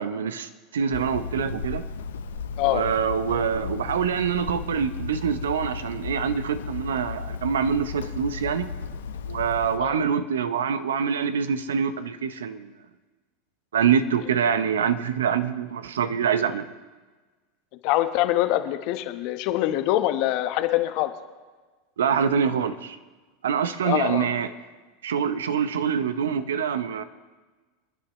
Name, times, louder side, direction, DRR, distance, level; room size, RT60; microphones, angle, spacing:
voice 1, 0.0-1.8 2.6-8.7 9.3-12.7 13.7-16.7 22.0-23.0 23.4-24.5 25.0-27.0, right 7 dB, 75° right, 12 dB, 0.7 m, -25 dB
Hammer, 0.9-9.8, left 5 dB, 75° left, 0.8 m, -35 dB
voice 2, 17.8-21.1 23.8-24.3, left 14 dB, 55° left, 9 dB, 1.1 m, -24 dB
28.0 x 9.9 x 3.1 m, 1.3 s
hypercardioid pair, 85°, 0 cm